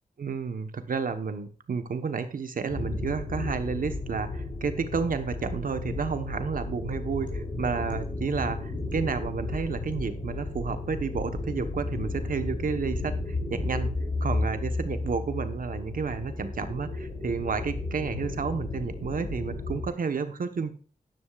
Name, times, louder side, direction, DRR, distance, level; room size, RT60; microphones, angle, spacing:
voice 1, 0.2-13.9 14.2-20.7, right 5 dB, 75° right, 9 dB, 1.2 m, -31 dB
sound 1, 2.7-19.9, left 2 dB, 70° left, 5.3 m, -33 dB
13.0 x 11.0 x 2.5 m, 0.42 s
wide cardioid pair, 115°, 14 cm